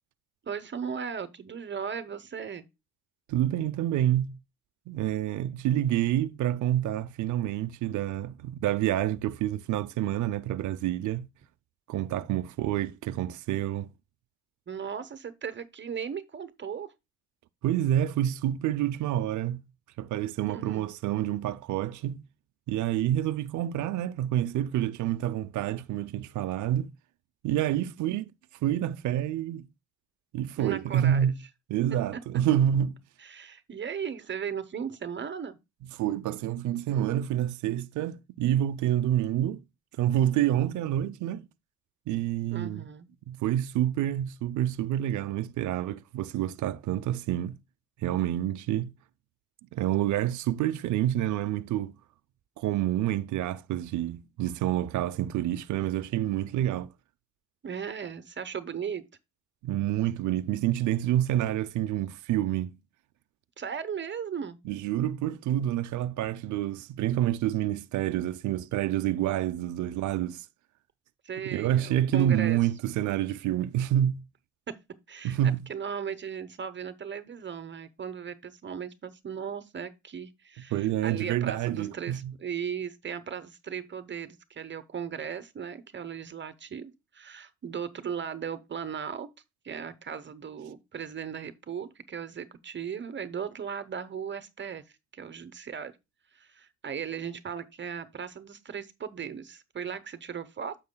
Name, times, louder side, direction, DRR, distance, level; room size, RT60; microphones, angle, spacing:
voice 1, 0.4-2.6 14.7-16.9 20.5-20.8 30.6-31.3 32.1-32.2 33.2-35.6 42.5-43.1 57.6-59.0 63.6-64.6 71.2-72.6 74.7-74.8 75.1-75.4 75.7-89.3 89.6-94.8 95.1-95.9 96.3-100.8, right 7 dB, 40° right, 0.9 m, -37 dB
voice 2, 3.3-4.4 4.9-11.3 11.9-13.9 17.6-19.6 20.0-22.2 22.7-26.9 27.4-28.3 28.6-29.7 30.3-31.4 31.7-33.0 35.9-39.6 40.0-41.4 42.1-42.9 43.3-47.6 48.0-48.9 49.7-52.0 52.6-56.9 59.6-62.8 64.6-70.5 71.4-74.2 75.2-75.6 80.7-82.3, right 12 dB, 75° right, 0.6 m, -28 dB
9.5 x 7.2 x 2.2 m
cardioid pair, 90°, 30 cm